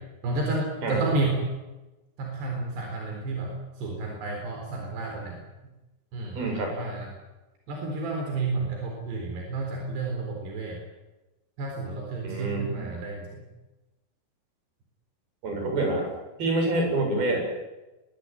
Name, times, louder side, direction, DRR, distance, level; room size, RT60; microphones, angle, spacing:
voice 1, 0.2-1.4 2.2-3.5 3.8-5.4 6.1-6.4 6.7-7.1 7.7-10.8 11.6-13.4, right 3 dB, 85° right, 1 dB, 6.3 m, -30 dB
voice 2, 6.4-6.7 12.2-12.9 15.4-16.1 16.4-17.4, right 2 dB, 65° right, 2 dB, 9.5 m, -27 dB
24.0 x 21.5 x 9.2 m, 1.1 s
omnidirectional pair, 4.7 m